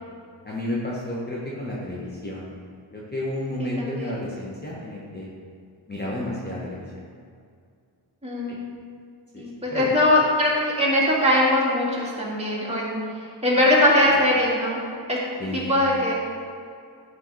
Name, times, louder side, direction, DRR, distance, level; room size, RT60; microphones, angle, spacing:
voice 1, 0.4-2.5 2.9-5.3 5.9-7.1 8.5-8.6 9.3-9.4 9.7-9.9 15.4-15.7, left 1 dB, 20° left, -6 dB, 1.1 m, -31 dB
voice 2, 3.6-4.2 8.2-8.6 9.4-13.0 13.4-14.8 15.1-15.2 15.7-16.2, left 1 dB, 15° right, -6 dB, 2.0 m, -21 dB
10.5 x 3.7 x 4.8 m, 2.3 s
wide cardioid pair, 105°, 47 cm